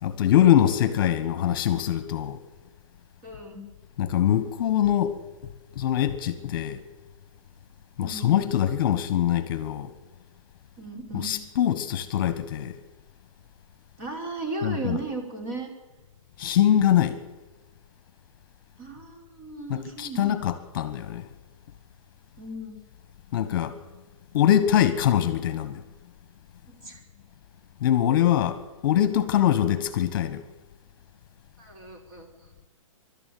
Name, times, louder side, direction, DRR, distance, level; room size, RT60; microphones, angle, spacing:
voice 1, 0.0-2.4 4.0-5.2 5.7-6.8 8.0-9.9 11.1-12.8 14.6-15.0 16.4-17.2 19.7-21.3 23.3-23.8 24.3-25.8 27.8-30.4, left 11 dB, 40° left, 1.3 m, -23 dB
voice 2, 3.2-3.7 8.0-8.3 10.8-11.3 14.0-15.7 18.8-20.4 22.4-22.7 26.7-27.0 31.6-32.5, right 3 dB, 35° right, 4.6 m, -36 dB
24.0 x 12.5 x 9.4 m
hypercardioid pair, 165°, 17 cm